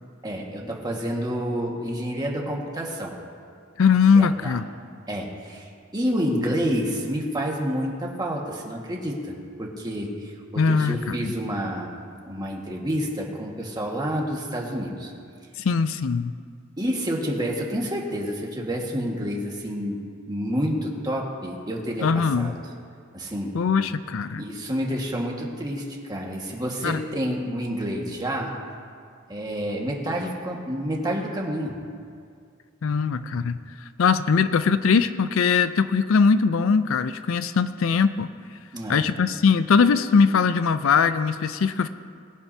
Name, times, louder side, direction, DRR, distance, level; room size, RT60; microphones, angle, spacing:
voice 1, 0.2-3.1 4.1-4.6 5.1-11.9 12.2-15.1 16.8-20.0 20.3-22.5 23.1-23.5 24.4-28.6 29.3-31.8 38.7-39.1, equal, 20° right, -1 dB, 1.7 m, -29 dB
voice 2, 3.8-4.6 10.6-11.3 15.6-16.3 22.0-22.5 23.5-24.4 26.8-27.0 32.8-33.6 34.0-38.3 38.9-41.9, left 5 dB, 80° left, 12 dB, 0.5 m, -21 dB
21.0 x 10.5 x 2.8 m, 2.2 s
head